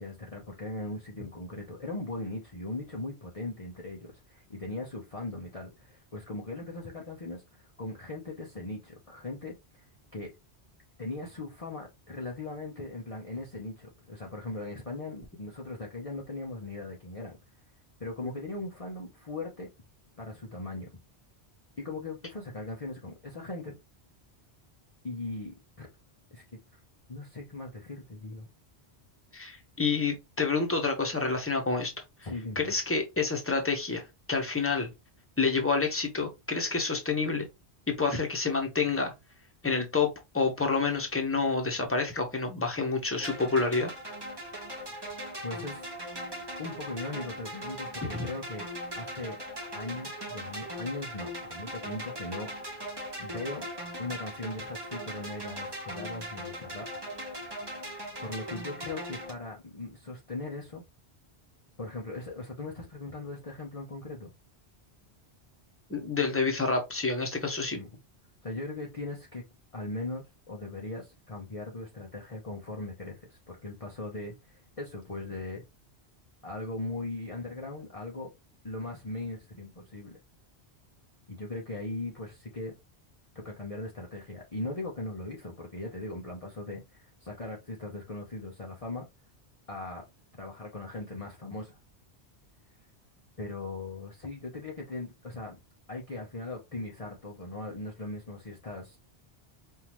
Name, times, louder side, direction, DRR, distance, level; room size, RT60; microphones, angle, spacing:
voice 1, 0.0-9.9 10.1-10.3 11.0-17.4 18.0-19.7 20.2-20.9 21.8-23.7 25.0-25.9 26.3-26.4 26.7-26.8 27.1-28.5 32.2-32.7 45.4-45.9 46.6-48.7 48.9-49.4 49.7-52.5 53.2-53.7 54.0-56.9 58.2-60.8 61.8-64.3 67.8-67.9 68.4-69.4 69.7-75.7 76.4-78.3 78.6-80.1 81.3-82.7 83.3-89.1 89.7-90.0 90.4-91.8 93.4-95.6 95.9-99.0, left 2 dB, 35° left, 0.9 m, -39 dB
voice 2, 29.3-31.9 32.5-34.9 35.4-37.4 37.9-39.1 39.6-40.1 40.3-43.9 48.0-48.3 65.9-67.8, left 4 dB, 10° left, 1.2 m, -28 dB
sound 1, 43.2-59.3, equal, 25° right, 1.2 m, -39 dB
5.5 x 2.8 x 3.1 m
omnidirectional pair, 1.1 m